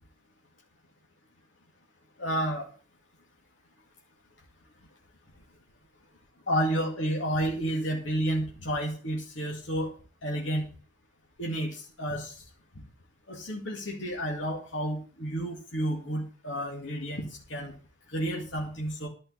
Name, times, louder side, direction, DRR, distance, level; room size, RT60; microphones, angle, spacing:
voice 1, 2.2-2.7 6.5-10.7 11.4-12.3 13.3-17.7 18.1-19.1, right 1 dB, 70° left, -1 dB, 2.3 m, -31 dB
11.5 x 5.4 x 8.4 m, 0.38 s
head